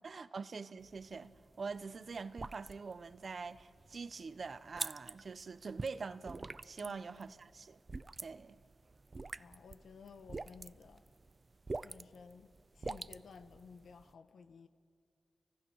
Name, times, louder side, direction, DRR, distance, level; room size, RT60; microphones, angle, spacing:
voice 1, 0.0-7.8 8.2-8.6, right 4 dB, 65° right, 1.0 m, -44 dB
sound 1, 0.8-14.1, right 3 dB, 45° right, 0.6 m, -47 dB
voice 2, 9.4-11.0 11.8-14.7, left 5 dB, 85° left, 1.6 m, -55 dB
29.5 x 24.5 x 6.5 m
cardioid pair, 45°, 0 cm